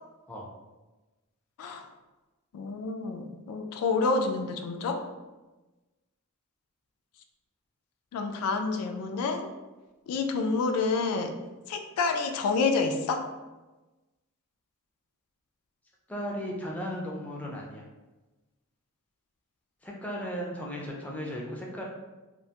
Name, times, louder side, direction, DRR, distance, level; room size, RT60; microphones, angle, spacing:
voice 1, 2.5-5.0 8.1-9.5 10.1-11.3 11.7-13.3, left 4 dB, 90° left, 6 dB, 0.3 m, -28 dB
voice 2, 16.1-17.9 19.8-21.8, equal, 5° left, -2 dB, 0.4 m, -36 dB
2.4 x 2.2 x 2.7 m, 1.1 s
head